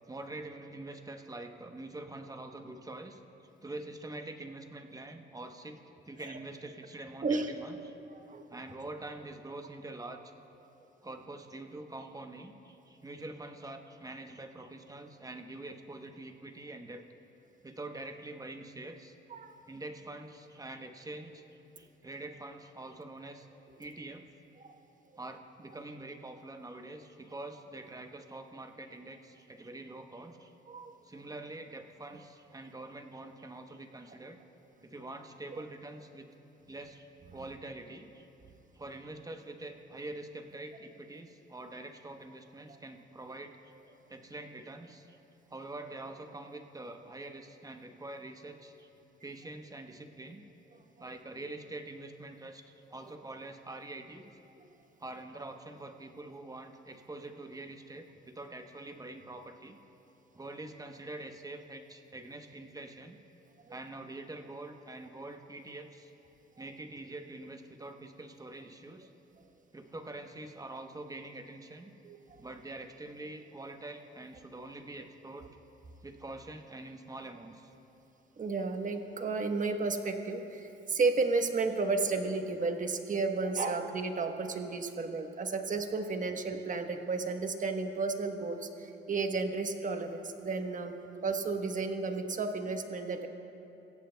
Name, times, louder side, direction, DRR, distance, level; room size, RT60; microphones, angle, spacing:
voice 1, 0.1-3.2 3.6-7.9 8.5-10.2 11.0-17.0 17.6-19.2 19.7-23.5 23.8-24.2 25.2-30.5 31.0-34.4 34.8-36.3 36.7-38.3 38.7-43.6 44.1-45.2 45.5-48.9 49.2-50.4 51.0-54.3 55.0-59.8 60.3-63.2 63.7-66.1 66.6-69.1 69.7-71.9 72.4-75.6 76.0-77.7, right 2 dB, 20° right, 5 dB, 0.9 m, -45 dB
voice 2, 7.2-7.5 8.1-8.4 19.3-19.5 24.6-24.8 30.7-31.0 54.6-54.7 63.7-63.8 72.0-72.2 78.4-90.9 91.2-93.3, right 3 dB, 40° right, 5 dB, 1.1 m, -32 dB
22.5 x 15.5 x 2.3 m, 3.0 s
cardioid pair, 90°, 20 cm